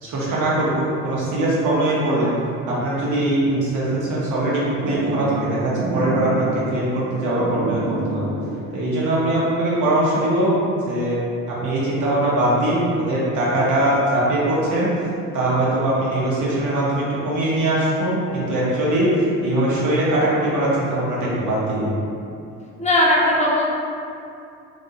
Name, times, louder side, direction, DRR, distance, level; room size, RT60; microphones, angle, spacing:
voice 1, 0.0-2.3 2.7-7.8 8.1-8.3 8.7-10.5 10.8-11.2 11.5-14.9 15.3-22.0, right 1 dB, 45° right, -7 dB, 1.0 m, -21 dB
sound 1, 4.6-9.3, right 2 dB, 65° right, 0.6 m, -29 dB
voice 2, 22.8-23.6, left 1 dB, 15° left, -4 dB, 0.4 m, -17 dB
2.6 x 2.2 x 2.8 m, 2.6 s
figure-of-eight pair, 55°, 43 cm